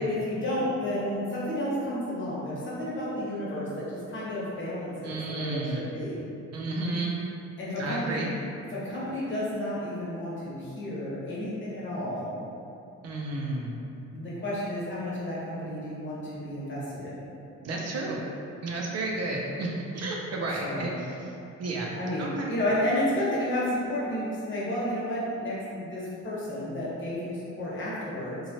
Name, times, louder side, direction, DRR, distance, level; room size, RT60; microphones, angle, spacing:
voice 1, 0.0-6.2 7.6-8.2 8.7-12.3 14.1-17.2 20.6-20.9 22.0-28.4, left 1 dB, 40° left, -8 dB, 1.0 m, -31 dB
voice 2, 5.0-5.8 6.5-7.1 7.8-8.3 13.0-13.7 17.6-18.2 18.6-20.9 21.6-21.9 22.2-22.5, right 2 dB, 55° right, -2 dB, 0.5 m, -31 dB
2.9 x 2.3 x 2.8 m, 2.6 s
cardioid pair, 90°, 30 cm